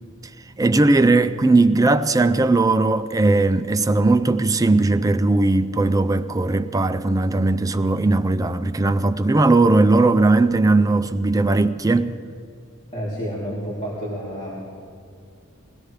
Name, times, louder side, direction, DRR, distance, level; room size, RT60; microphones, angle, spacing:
voice 1, 0.6-12.1, right 2 dB, 15° right, 0.4 m, -18 dB
voice 2, 12.9-14.6, equal, 30° left, 3.2 m, -29 dB
21.5 x 16.0 x 3.3 m
head